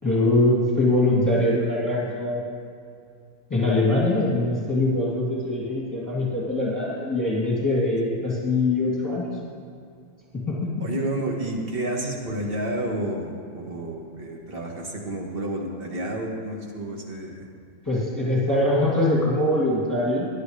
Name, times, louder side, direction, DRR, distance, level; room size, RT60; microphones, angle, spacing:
voice 1, 0.0-2.4 3.5-9.3 10.3-10.9 17.8-20.3, left 2 dB, 10° left, -7 dB, 2.7 m, -23 dB
voice 2, 10.8-17.5, right 1 dB, 30° right, 0 dB, 1.6 m, -30 dB
19.0 x 11.0 x 3.3 m, 2.4 s
omnidirectional pair, 2.0 m